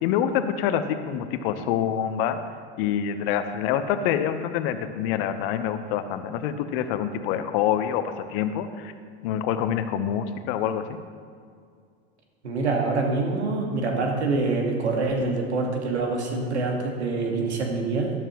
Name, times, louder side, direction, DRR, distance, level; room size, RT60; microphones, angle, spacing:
voice 1, 0.0-2.4 2.8-8.9 9.2-11.0, left 9 dB, 60° left, 10 dB, 1.0 m, -26 dB
voice 2, 12.4-18.1, right 3 dB, 90° right, 1 dB, 2.0 m, -25 dB
12.5 x 12.5 x 3.1 m, 2.1 s
hypercardioid pair, 90°, 33 cm